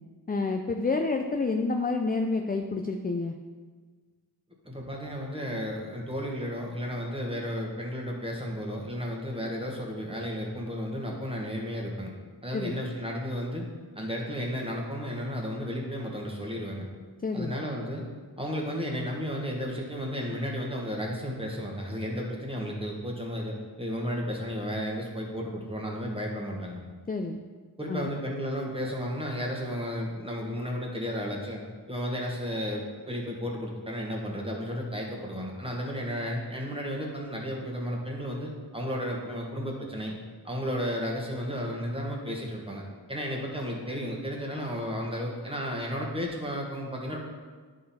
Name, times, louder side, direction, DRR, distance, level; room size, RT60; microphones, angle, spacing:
voice 1, 0.3-3.4 12.5-12.8 17.2-17.6 27.1-27.4 27.9-28.1, left 3 dB, 20° left, 4 dB, 0.4 m, -29 dB
voice 2, 4.6-12.1 12.4-13.7 13.9-16.8 17.3-18.1 18.4-26.8 27.8-31.6 31.9-40.1 40.4-42.8 43.1-47.2, equal, 15° right, -1 dB, 1.4 m, -33 dB
11.0 x 3.8 x 4.2 m, 1.5 s
wide cardioid pair, 85°, 42 cm